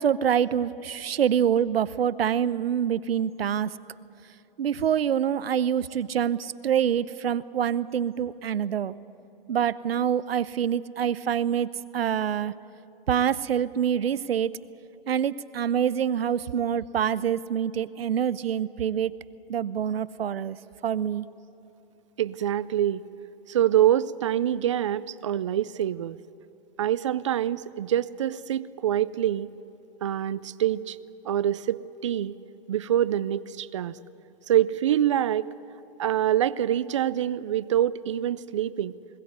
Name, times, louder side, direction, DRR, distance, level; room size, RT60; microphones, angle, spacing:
voice 1, 0.0-3.7 4.6-9.0 9.5-12.5 13.1-14.5 15.1-19.1 19.5-20.6 20.8-21.3, right 9 dB, 80° right, 16 dB, 0.8 m, -26 dB
voice 2, 22.2-23.0 23.5-26.2 26.8-29.5 30.0-31.0 31.2-32.4 32.7-34.0 34.5-35.5 36.0-38.9, right 11 dB, 35° right, 17 dB, 0.4 m, -25 dB
21.5 x 15.5 x 9.3 m, 3.0 s
hypercardioid pair, 155°, 29 cm